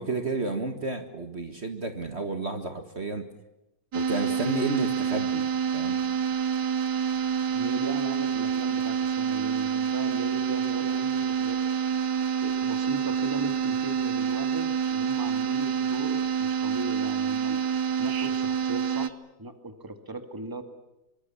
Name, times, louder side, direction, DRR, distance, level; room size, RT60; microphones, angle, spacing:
voice 1, 0.0-3.3 3.9-5.5 5.7-6.0, right 3 dB, 40° right, 7 dB, 2.0 m, -31 dB
sound 1, 3.9-19.1, right 7 dB, 70° right, 1.7 m, -27 dB
voice 2, 7.5-12.0 12.4-17.6 18.0-20.6, right 2 dB, 10° right, 8 dB, 2.0 m, -38 dB
25.0 x 24.0 x 7.1 m, 0.94 s
omnidirectional pair, 1.9 m